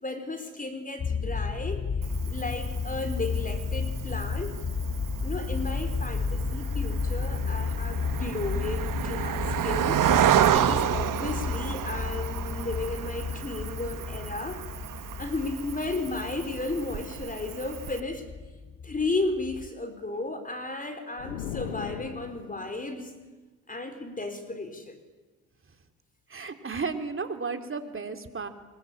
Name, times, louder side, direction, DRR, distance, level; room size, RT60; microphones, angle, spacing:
voice 1, 0.0-1.8 2.3-4.6 5.2-10.0 10.5-14.6 15.2-18.2 18.8-23.2 23.7-25.0, left 2 dB, 20° left, 8 dB, 4.2 m, -34 dB
sound 1, 1.0-19.7, left 5 dB, 40° left, 1.4 m, -33 dB
Cricket, 2.0-18.0, right 10 dB, 60° right, 1.5 m, -31 dB
sound 2, 21.2-22.8, left 10 dB, 90° left, 1.3 m, -37 dB
voice 2, 26.3-28.5, right 4 dB, 35° right, 7 dB, 3.2 m, -34 dB
24.5 x 21.5 x 8.8 m, 1.3 s
hypercardioid pair, 60°, 37 cm